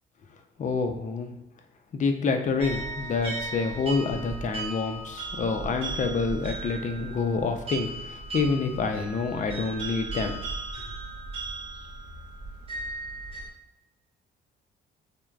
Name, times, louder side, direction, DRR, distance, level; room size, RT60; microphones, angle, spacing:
voice 1, 0.6-1.3 1.9-10.4, left 4 dB, 40° left, 6 dB, 0.4 m, -27 dB
sound 1, 2.6-13.5, right 3 dB, 30° right, 0.9 m, -36 dB
3.2 x 2.1 x 2.4 m, 0.98 s
cardioid pair, 90°, 20 cm